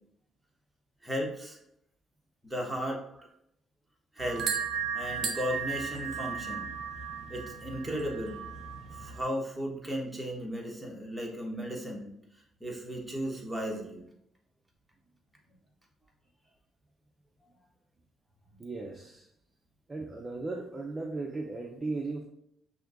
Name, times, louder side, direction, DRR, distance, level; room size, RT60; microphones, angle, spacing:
voice 1, 1.0-1.6 2.4-3.0 4.2-4.5 4.9-6.7 7.3-8.4 9.0-12.1 12.6-14.1, equal, 5° right, -2 dB, 1.2 m, -35 dB
sound 1, 4.2-9.2, right 6 dB, 70° right, 0.5 m, -35 dB
voice 2, 18.6-19.3 19.9-22.2, right 3 dB, 25° right, 0 dB, 0.5 m, -36 dB
5.9 x 2.7 x 2.5 m, 0.74 s
cardioid pair, 90°, 0 cm